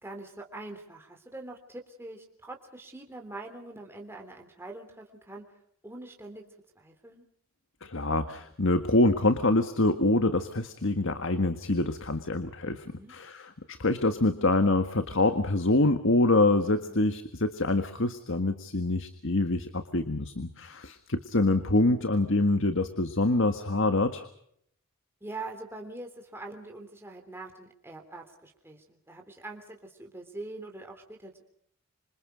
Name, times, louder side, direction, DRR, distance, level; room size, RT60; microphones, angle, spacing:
voice 1, 0.0-5.5 5.8-6.4 6.7-7.2 12.6-13.1 16.9-17.0 25.2-31.4, right 2 dB, 10° right, 2 dB, 3.3 m, -43 dB
voice 2, 7.8-12.8 13.1-24.3, left 2 dB, 60° left, 9 dB, 1.7 m, -25 dB
26.5 x 26.5 x 5.2 m, 0.68 s
head